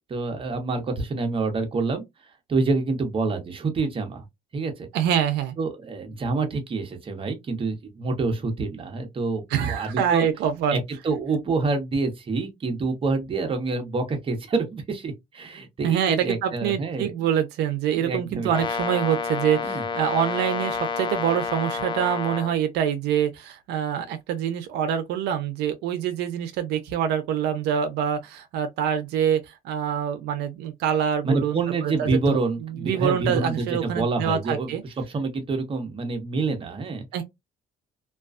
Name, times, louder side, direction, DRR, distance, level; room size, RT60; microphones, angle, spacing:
voice 1, 0.1-2.0 2.5-4.2 4.5-4.9 5.6-10.3 10.7-17.1 18.0-18.5 19.6-19.8 31.2-34.7 35.1-37.1, right 3 dB, 30° right, 0.8 m, -27 dB
voice 2, 4.9-5.5 9.5-10.8 15.8-34.8 37.1-37.2, right 9 dB, 80° right, 0.5 m, -25 dB
Brass instrument, 18.5-22.5, left 5 dB, 30° left, 0.3 m, -29 dB
2.3 x 2.3 x 2.4 m
cardioid pair, 110°, 17 cm